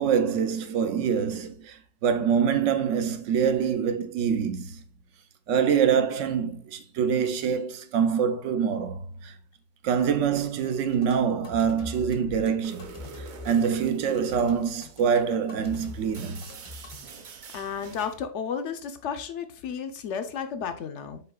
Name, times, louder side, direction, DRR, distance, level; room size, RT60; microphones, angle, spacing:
voice 1, 0.0-4.8 5.5-9.3 9.8-12.9 13.2-16.4, right 7 dB, 80° right, 0.9 m, -25 dB
sound 1, 10.9-17.0, left 3 dB, 35° left, 0.6 m, -43 dB
sound 2, 12.6-18.2, right 5 dB, 55° right, 0.5 m, -46 dB
voice 2, 17.5-21.2, left 7 dB, 70° left, 0.9 m, -33 dB
5.6 x 3.9 x 2.2 m
omnidirectional pair, 1.3 m